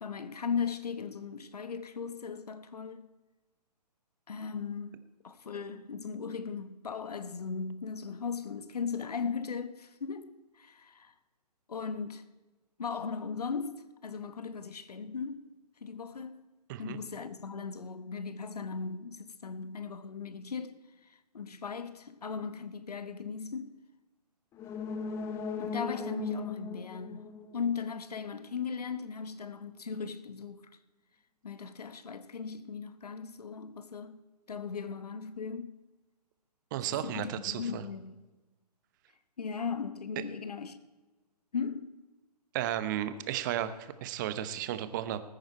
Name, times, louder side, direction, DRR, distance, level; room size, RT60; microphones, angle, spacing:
voice 1, 0.0-3.1 4.3-5.0 5.2-11.1 11.7-12.2 12.8-15.4 15.8-16.4 16.8-23.7 25.6-30.7 31.4-34.2 34.5-35.8 36.9-38.2 39.4-40.8 41.5-42.0, left 5 dB, 65° left, 1.0 m, -38 dB
sound 1, 24.5-28.2 28.6-28.7, left 5 dB, 10° left, 0.7 m, -38 dB
voice 2, 36.7-37.8 42.5-45.2, right 11 dB, 30° right, 0.8 m, -34 dB
19.5 x 9.0 x 4.3 m
figure-of-eight pair, 130°, 21 cm